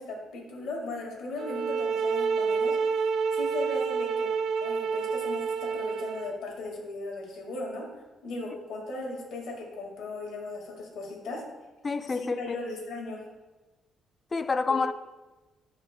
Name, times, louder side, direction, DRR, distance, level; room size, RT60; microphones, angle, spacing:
voice 1, 0.0-2.8 3.3-4.3 4.6-7.9 8.2-11.4 12.1-13.2 14.7-14.8, left 2 dB, 80° left, 1.8 m, -37 dB
sound 1, 1.4-6.4, right 5 dB, 70° right, 0.4 m, -28 dB
voice 2, 11.8-12.4 14.3-14.9, left 4 dB, 30° left, 0.3 m, -27 dB
10.5 x 4.1 x 2.2 m
cardioid pair, 90°, 0 cm